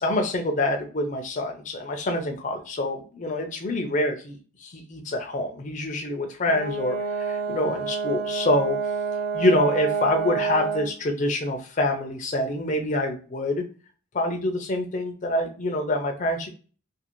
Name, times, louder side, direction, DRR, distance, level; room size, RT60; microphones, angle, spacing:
voice 1, 0.0-4.4 4.6-8.8 9.3-13.6 14.1-16.5, left 1 dB, 35° left, 3 dB, 0.4 m, -26 dB
Brass instrument, 6.5-10.9, right 6 dB, 40° right, 0.4 m, -28 dB
2.5 x 2.4 x 2.9 m, 0.37 s
head